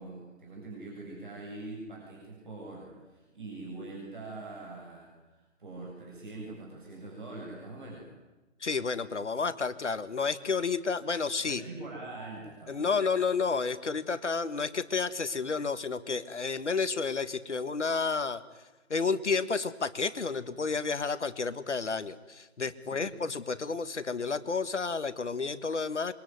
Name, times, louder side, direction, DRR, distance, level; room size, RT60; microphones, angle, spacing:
voice 1, 0.0-8.1 11.4-13.0 22.8-23.1, right 2 dB, 40° right, -3 dB, 7.7 m, -43 dB
voice 2, 8.6-11.6 12.7-18.4 18.9-26.1, left 4 dB, 60° left, 13 dB, 1.6 m, -31 dB
26.5 x 24.0 x 9.4 m, 1.2 s
figure-of-eight pair, 170°, 39 cm